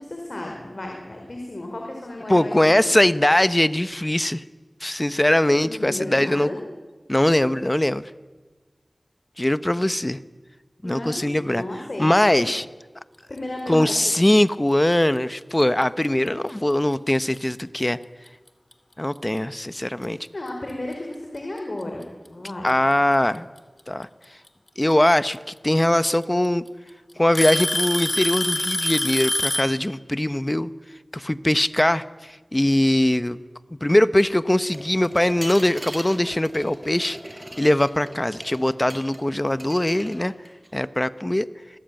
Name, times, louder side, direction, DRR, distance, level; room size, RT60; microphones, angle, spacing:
voice 1, 0.0-3.0 5.6-6.6 10.8-12.1 12.4-12.5 13.3-13.9 20.3-22.7, left 1 dB, 60° left, 1 dB, 4.9 m, -33 dB
voice 2, 2.3-4.4 4.8-6.5 7.1-8.0 9.4-10.2 10.8-11.6 12.0-12.6 13.7-18.0 19.0-20.2 22.6-23.5 23.9-24.1 24.8-26.6 27.2-30.7 31.1-33.4 33.8-37.2 37.6-40.3 40.7-41.5, left 1 dB, 25° left, 14 dB, 1.0 m, -21 dB
Alarm / Tick-tock, 15.8-16.1 16.9-17.0 17.8-17.9 19.6-19.7 20.9-21.0 22.3-22.7 24.5-24.6 25.8-25.9 26.2-26.7 27.3-29.8, left 1 dB, 40° left, 2.4 m, -25 dB
sound 1, 34.7-39.2 39.5-40.7, right 1 dB, 30° right, 5.6 m, -40 dB
27.5 x 20.0 x 9.1 m, 1.3 s
wide cardioid pair, 45°, 0 cm